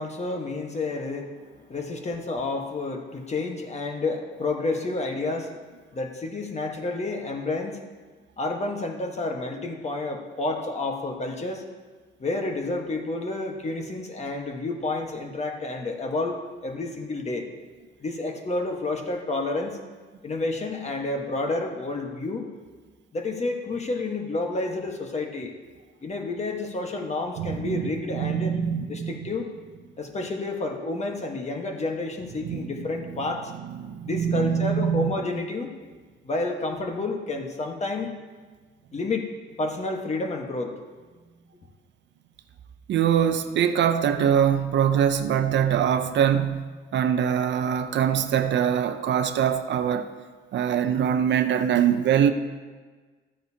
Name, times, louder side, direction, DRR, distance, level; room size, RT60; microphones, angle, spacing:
voice 1, 0.0-5.5 5.9-7.8 8.4-11.6 12.2-17.5 18.0-19.8 20.2-22.5 23.1-25.5 26.0-28.6 28.9-29.5 30.0-33.5 34.0-35.7 36.2-38.1 38.9-39.3 39.6-40.8, left 2 dB, 35° left, 3 dB, 1.4 m, -30 dB
voice 2, 27.4-27.8 28.1-29.3 32.4-32.7 33.8-35.1 42.9-46.6 46.9-50.1 50.5-52.3, right 8 dB, 65° right, 9 dB, 0.6 m, -23 dB
13.0 x 9.2 x 2.8 m, 1.4 s
cardioid pair, 90°, 20 cm